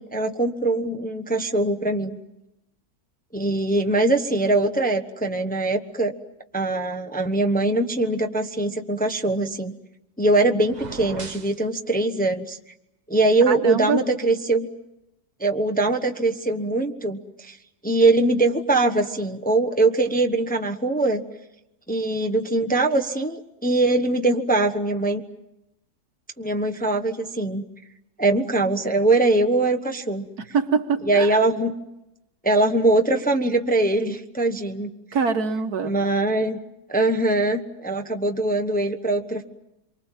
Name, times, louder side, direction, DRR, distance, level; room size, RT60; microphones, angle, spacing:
voice 1, 0.0-2.2 3.3-6.1 6.5-9.7 10.2-12.6 13.1-14.7 15.4-17.6 17.8-21.2 21.9-25.2 26.4-27.6 28.2-30.3 31.1-31.7 32.4-34.9 35.8-36.6 36.9-39.4, right 2 dB, 5° left, 3 dB, 0.9 m, -22 dB
sound 1, 10.6-11.6, right 5 dB, 30° right, 1.0 m, -36 dB
voice 2, 13.5-14.0 30.5-31.4 35.1-35.9, right 5 dB, 75° right, 7 dB, 2.0 m, -24 dB
27.0 x 24.0 x 7.4 m, 0.90 s
omnidirectional pair, 1.7 m